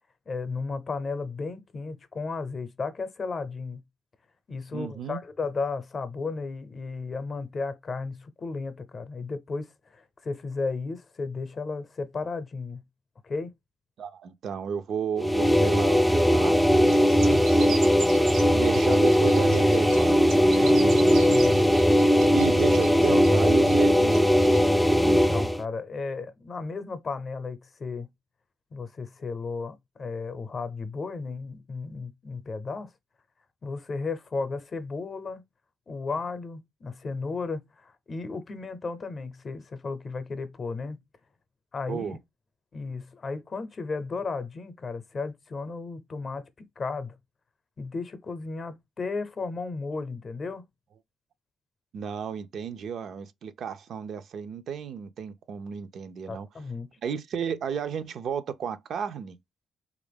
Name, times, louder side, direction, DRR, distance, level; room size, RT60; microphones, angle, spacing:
voice 1, 0.3-3.8 4.5-12.8 13.2-13.5 17.3-17.4 20.6-21.0 21.3-21.7 25.0-28.1 28.7-32.9 33.6-35.4 35.9-41.0 41.7-42.2 42.7-47.1 47.8-50.7 56.3-56.9, left 4 dB, 40° left, 0.6 m, -34 dB
voice 2, 4.7-5.2 14.0-17.0 17.2-17.8 18.5-21.5 22.3-24.3 41.9-42.2 51.9-56.5 57.0-59.4, right 7 dB, 65° right, 0.4 m, -33 dB
sound 1, 15.2-25.6, equal, ahead, 0.3 m, -20 dB
sound 2, 16.7-24.6, right 5 dB, 90° right, 1.1 m, -41 dB
3.4 x 2.5 x 3.3 m
cardioid pair, 90°, 0 cm